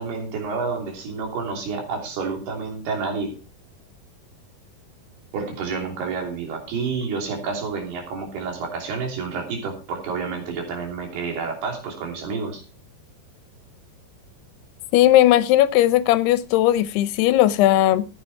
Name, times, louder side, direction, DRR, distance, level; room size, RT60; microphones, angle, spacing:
voice 1, 0.0-3.3 5.3-12.6, right 4 dB, 80° right, 5.1 m, -29 dB
voice 2, 14.9-18.1, left 14 dB, 85° left, 2.8 m, -17 dB
14.5 x 8.9 x 4.5 m
omnidirectional pair, 4.6 m